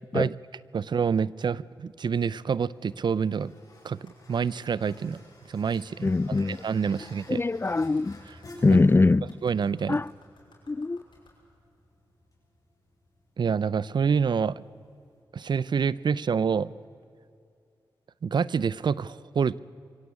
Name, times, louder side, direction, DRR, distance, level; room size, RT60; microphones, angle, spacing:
voice 1, 0.7-3.5 3.8-5.2 5.5-7.4 9.4-10.0 13.4-14.6 15.3-16.7 18.2-19.6, right 6 dB, 60° right, 0.5 m, -27 dB
sound 1, 1.9-15.2, left 1 dB, 45° left, 7.7 m, -53 dB
Clapping, 4.1-4.2 4.9-5.0 5.7-5.9 6.4-6.5 7.0-7.1 7.6-11.4, left 3 dB, 65° left, 6.4 m, -60 dB
voice 2, 6.0-6.6 7.3-8.2 8.6-9.3 9.9-10.1 10.7-11.0, left 3 dB, 25° left, 0.4 m, -22 dB
23.5 x 16.5 x 8.6 m
cardioid pair, 60°, 8 cm